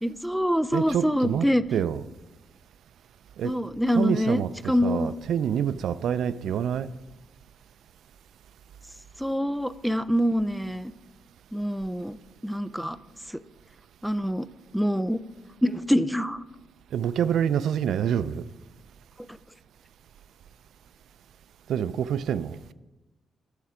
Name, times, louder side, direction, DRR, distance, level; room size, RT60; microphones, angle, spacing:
voice 1, 0.0-1.6 3.4-5.2 9.2-10.9 11.5-12.2 12.4-13.0 14.0-14.4 14.7-15.2 15.6-16.4, equal, ahead, 0.3 m, -25 dB
voice 2, 0.7-2.1 3.4-3.6 3.9-6.9 16.9-18.4 21.7-22.6, right 9 dB, 75° right, 0.4 m, -27 dB
11.5 x 6.8 x 4.9 m
wide cardioid pair, 155°, 0 cm